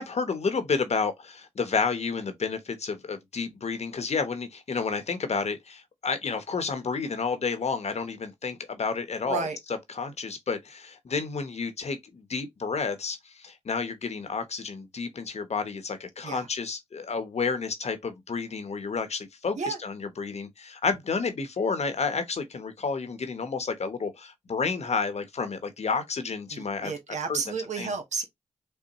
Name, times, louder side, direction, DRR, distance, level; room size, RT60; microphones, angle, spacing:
voice 1, 0.0-26.9 27.3-27.4 27.8-27.9, left 5 dB, 65° left, 0.9 m, -30 dB
voice 2, 9.2-9.6 16.2-16.5 19.6-19.8 26.5-28.2, right 5 dB, 80° right, 1.0 m, -32 dB
5.4 x 2.1 x 2.9 m
cardioid pair, 45°, 12 cm